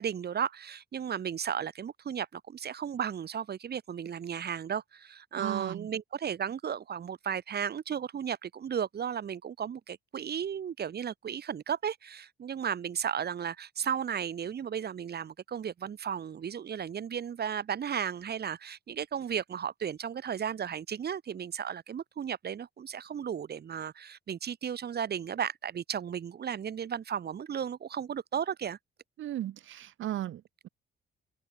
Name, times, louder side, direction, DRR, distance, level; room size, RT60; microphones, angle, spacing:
voice 1, 0.0-28.8, right 8 dB, 55° right, 4.9 m, -34 dB
voice 2, 5.4-5.9 29.2-30.7, right 13 dB, 80° right, 4.4 m, -36 dB
cardioid pair, 90°, 20 cm